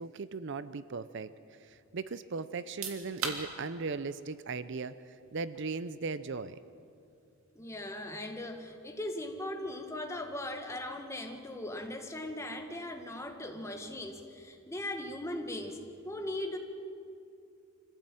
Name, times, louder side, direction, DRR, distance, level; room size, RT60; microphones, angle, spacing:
voice 1, 0.0-1.3 1.6-6.6, right 4 dB, 55° right, 14 dB, 0.6 m, -38 dB
sound 1, 2.6-15.2, right 5 dB, 70° right, 2.5 m, -48 dB
voice 2, 7.6-15.8 16.0-16.6, left 1 dB, 15° left, 4 dB, 1.8 m, -39 dB
25.0 x 15.5 x 9.0 m, 2.5 s
head